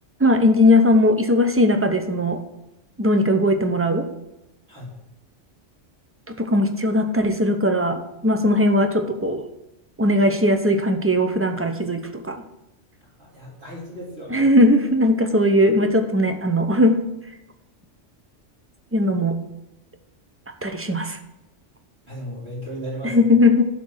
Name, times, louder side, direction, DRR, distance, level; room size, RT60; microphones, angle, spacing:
voice 1, 0.2-2.4 3.0-4.1 6.3-9.5 10.0-12.4 14.3-17.0 18.9-19.4 20.6-21.2 23.0-23.6, left 1 dB, 15° right, 6 dB, 0.5 m, -19 dB
voice 2, 13.2-14.5 22.1-23.2, equal, 55° right, -7 dB, 3.5 m, -35 dB
11.5 x 3.9 x 6.2 m, 0.94 s
omnidirectional pair, 1.3 m